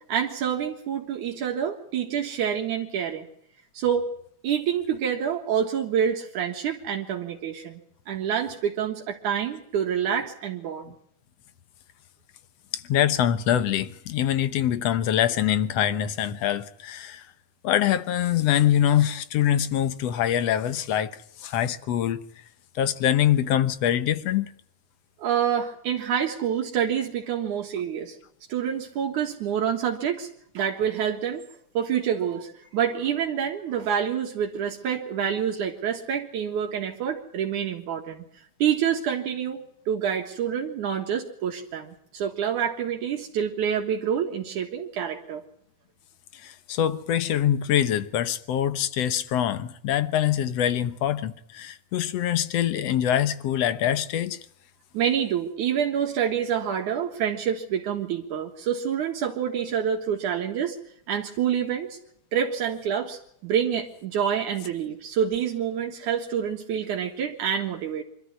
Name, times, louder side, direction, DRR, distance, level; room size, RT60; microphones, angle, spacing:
voice 1, 0.1-3.3 3.7-4.1 4.4-7.8 8.1-10.9 25.2-28.2 28.5-30.3 30.5-31.4 31.7-38.2 38.6-39.6 39.9-45.4 54.9-60.8 61.1-62.0 62.3-68.0, right 8 dB, 80° right, 3.1 m, -27 dB
voice 2, 12.7-17.2 17.6-22.2 22.8-24.5 46.4-54.4, left 10 dB, 65° left, 1.9 m, -24 dB
25.0 x 13.0 x 9.6 m
omnidirectional pair, 3.5 m